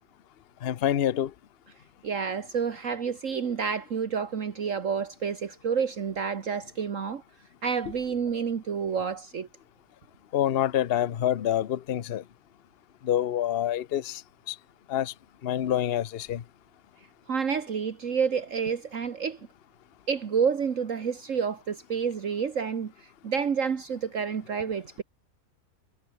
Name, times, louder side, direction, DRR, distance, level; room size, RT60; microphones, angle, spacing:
voice 1, 0.6-1.3 10.3-12.2 13.1-14.1 14.9-15.1 15.4-16.4, left 11 dB, 50° left, 0.9 m, -26 dB
voice 2, 2.0-7.2 7.6-9.5 17.3-19.4 20.1-22.9 23.2-25.0, right 6 dB, 60° right, 1.7 m, -29 dB
omnidirectional pair, 1.6 m